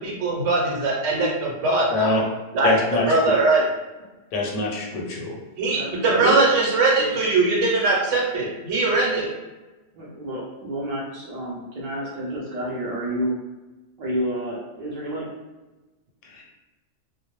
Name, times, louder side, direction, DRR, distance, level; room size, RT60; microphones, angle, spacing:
voice 1, 0.0-2.2 2.5-2.7 3.1-3.6 5.6-9.3, right 3 dB, 90° right, -2 dB, 1.0 m, -21 dB
voice 2, 1.9-2.2 2.6-3.0 4.3-5.3 16.3-16.4, left 3 dB, 90° left, -1 dB, 1.0 m, -24 dB
voice 3, 5.6-6.4 7.0-7.1 9.9-13.3 14.0-15.3, right 1 dB, 50° right, -6 dB, 0.5 m, -29 dB
2.2 x 2.0 x 2.9 m, 1.1 s
omnidirectional pair, 1.2 m